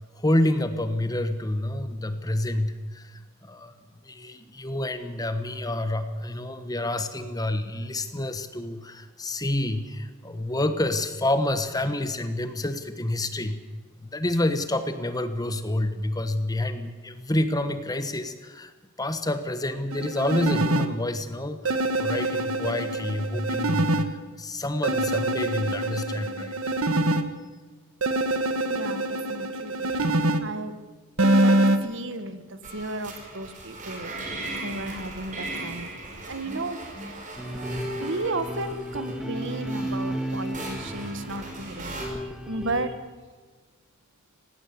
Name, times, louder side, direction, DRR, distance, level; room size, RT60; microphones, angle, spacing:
voice 1, 0.0-3.7 4.0-13.6 14.0-18.7 19.0-26.7, left 1 dB, 20° left, 10 dB, 1.3 m, -28 dB
sound 1, 19.9-20.9 21.6-24.0 24.8-27.2 28.0-30.4 31.2-31.8, right 1 dB, 85° right, 1.5 m, -24 dB
voice 2, 28.7-30.1 30.4-30.7 31.4-35.9 36.3-37.2 38.0-43.0, right 2 dB, 60° right, 11 dB, 1.7 m, -34 dB
sound 2, 32.6-42.1, right 2 dB, 40° right, 4.9 m, -38 dB
sound 3, 37.4-42.9, equal, 5° right, 1.7 m, -34 dB
18.0 x 17.5 x 8.6 m, 1.4 s
head